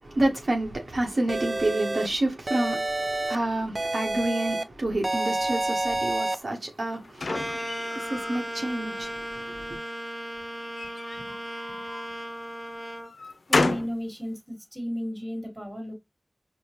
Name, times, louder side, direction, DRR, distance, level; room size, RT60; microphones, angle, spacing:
voice 1, 0.0-9.8, right 1 dB, 75° right, 1.0 m, -29 dB
sound 1, 1.3-2.1 2.5-3.4 3.8-4.6 5.0-6.4, right 2 dB, 45° right, 0.4 m, -28 dB
sound 2, 6.5-8.4 8.9-9.6 10.6-12.1 12.7-14.0, left 3 dB, 90° left, 0.4 m, -31 dB
sound 3, 7.3-13.1, equal, 5° left, 0.7 m, -36 dB
voice 2, 13.5-15.9, equal, 10° right, 1.4 m, -34 dB
4.6 x 2.1 x 2.9 m
cardioid pair, 40°, 0 cm